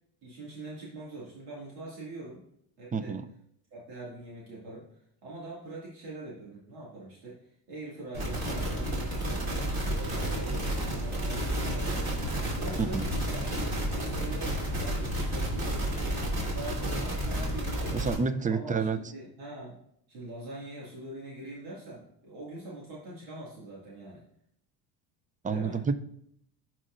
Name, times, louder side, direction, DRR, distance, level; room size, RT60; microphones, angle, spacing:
voice 1, 0.2-2.4 2.8-3.2 3.7-4.9 5.2-12.1 12.5-13.5 13.9-16.2 16.5-18.0 18.5-19.8 20.1-24.2 25.5-25.9, right 2 dB, 85° right, -6 dB, 2.3 m, -43 dB
voice 2, 2.9-3.2 12.8-13.1 17.9-19.0 25.4-26.0, right 5 dB, 15° right, 13 dB, 0.4 m, -29 dB
sound 1, 8.1-18.2, right 1 dB, 45° right, 3.0 m, -31 dB
11.5 x 4.3 x 2.5 m, 0.70 s
supercardioid pair, 80°, 49 cm